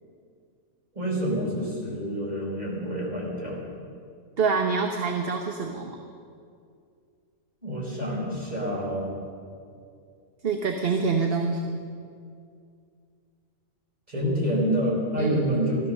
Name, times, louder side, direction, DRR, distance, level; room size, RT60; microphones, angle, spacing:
voice 1, 0.9-3.6 7.6-9.1 14.1-15.8, equal, 30° right, -4 dB, 4.7 m, -27 dB
voice 2, 4.4-6.0 10.4-11.8 15.2-15.5, right 4 dB, 50° right, 3 dB, 1.1 m, -26 dB
16.5 x 13.5 x 6.5 m, 2.3 s
omnidirectional pair, 1.4 m